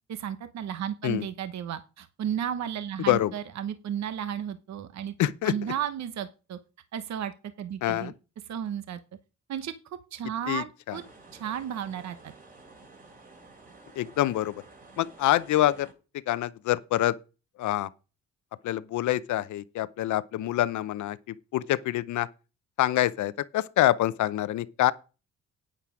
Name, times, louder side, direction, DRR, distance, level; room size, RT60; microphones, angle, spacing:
voice 1, 0.1-5.1 5.4-6.6 6.9-8.1 8.5-9.0 9.5-9.7 10.1-11.0 11.3-12.3, right 9 dB, 65° right, 1.0 m, -33 dB
voice 2, 5.2-5.5 7.8-8.1 10.5-11.0 14.0-14.5 15.0-15.9 16.3-17.1 17.6-17.9 18.6-22.3 22.8-24.9, left 14 dB, 75° left, 0.7 m, -26 dB
sound 1, 10.9-15.9, right 3 dB, 30° right, 3.2 m, -52 dB
9.1 x 8.6 x 4.9 m
cardioid pair, 90°, 30 cm